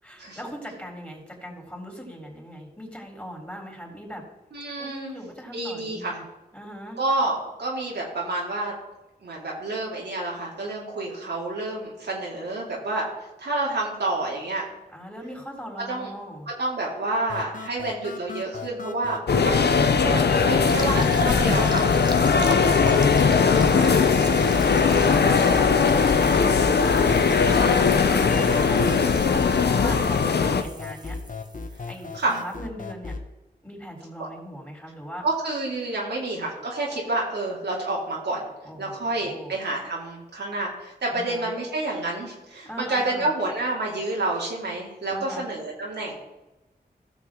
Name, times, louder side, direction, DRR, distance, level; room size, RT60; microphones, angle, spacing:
voice 1, 0.0-4.2 4.8-6.2 6.5-7.0 14.9-16.5 22.1-26.3 27.7-31.2 31.9-33.1 33.6-35.2 38.6-39.5 41.1-41.5 42.6-43.3 45.1-45.5, equal, 10° left, -1 dB, 3.8 m, -40 dB
voice 2, 4.5-5.2 5.5-6.2 7.0-8.7 9.2-13.1 13.4-14.6 15.9-16.1 16.6-21.9 23.5-24.1 25.2-25.8 26.8-27.7 32.1-32.4 34.2-34.3 35.2-38.4 38.8-46.1, right 2 dB, 85° right, -4 dB, 2.7 m, -29 dB
sound 1, 17.3-33.3, left 4 dB, 50° left, 0.9 m, -37 dB
sound 2, 19.3-30.6, left 5 dB, 75° left, 0.7 m, -19 dB
sound 3, 20.7-32.6, right 2 dB, 25° right, 1.2 m, -39 dB
15.5 x 6.3 x 3.8 m, 1.0 s
cardioid pair, 55°, 17 cm